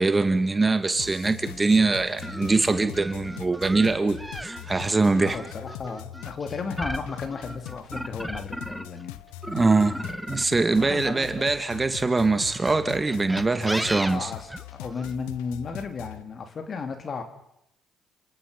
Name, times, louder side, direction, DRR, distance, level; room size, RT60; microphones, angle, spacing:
voice 1, 0.0-5.4 9.5-10.0 10.3-14.3, right 3 dB, 25° right, 9 dB, 2.3 m, -23 dB
sound 1, 1.0-16.2, left 15 dB, 80° left, 0.9 m, -42 dB
sound 2, 2.2-9.0 9.4-11.8 12.5-15.1, equal, ahead, 1.4 m, -36 dB
voice 2, 5.2-9.2 10.7-11.5 13.9-17.2, left 5 dB, 45° left, 6 dB, 3.5 m, -34 dB
29.0 x 27.5 x 5.6 m, 0.82 s
hypercardioid pair, 50°, 0 cm